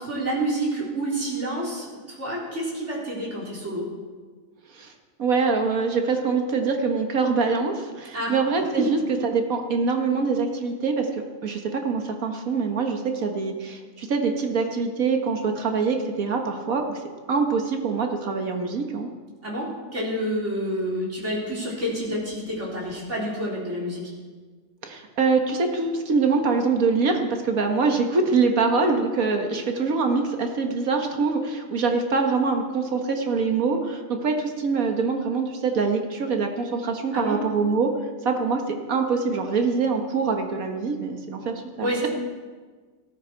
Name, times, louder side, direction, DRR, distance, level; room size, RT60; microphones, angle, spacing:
voice 1, 0.0-3.9 8.1-8.3 8.8-8.9 19.4-24.1 37.1-37.4 41.8-42.1, right 1 dB, 55° right, -5 dB, 4.3 m, -28 dB
voice 2, 5.2-17.0 17.3-19.1 24.8-37.9 38.2-42.1, right 4 dB, 80° right, 4 dB, 1.8 m, -24 dB
17.5 x 13.0 x 4.6 m, 1.4 s
omnidirectional pair, 1.5 m